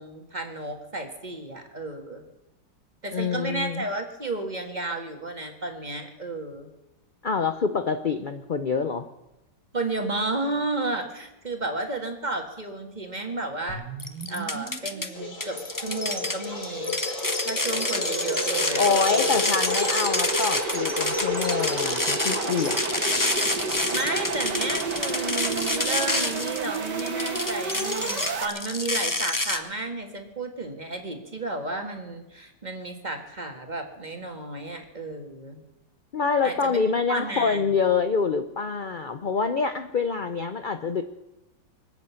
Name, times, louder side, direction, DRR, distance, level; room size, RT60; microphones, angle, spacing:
voice 1, 0.0-2.2 3.0-6.7 9.7-13.8 14.3-17.0 17.4-19.4 23.9-35.6 36.4-37.7, right 2 dB, 25° right, 4 dB, 1.8 m, -32 dB
voice 2, 3.1-3.8 7.2-9.1 18.8-22.8 36.1-41.0, left 5 dB, 60° left, 8 dB, 0.5 m, -26 dB
sound 1, 13.7-28.5, right 4 dB, 70° right, 2.2 m, -32 dB
sound 2, 14.0-15.1 15.4-29.6, left 2 dB, 15° left, 0.7 m, -28 dB
sound 3, 15.1-23.6, left 5 dB, 75° left, 3.8 m, -34 dB
24.5 x 8.4 x 7.0 m, 0.98 s
omnidirectional pair, 1.9 m